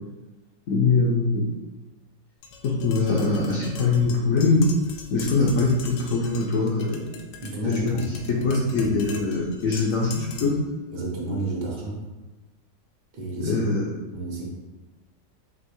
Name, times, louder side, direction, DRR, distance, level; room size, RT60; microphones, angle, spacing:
voice 1, 0.7-1.4 2.6-4.6 5.1-7.1 7.6-10.5 13.4-13.9, left 3 dB, 65° left, -4 dB, 0.9 m, -23 dB
Tap, 2.4-10.7, left 5 dB, 85° left, 1.3 m, -41 dB
voice 2, 7.4-8.0 8.4-8.5 8.8-8.9 10.9-12.0 13.1-13.6 14.1-14.5, right 2 dB, 75° right, -2 dB, 1.6 m, -30 dB
5.3 x 2.9 x 3.0 m, 1.1 s
omnidirectional pair, 2.0 m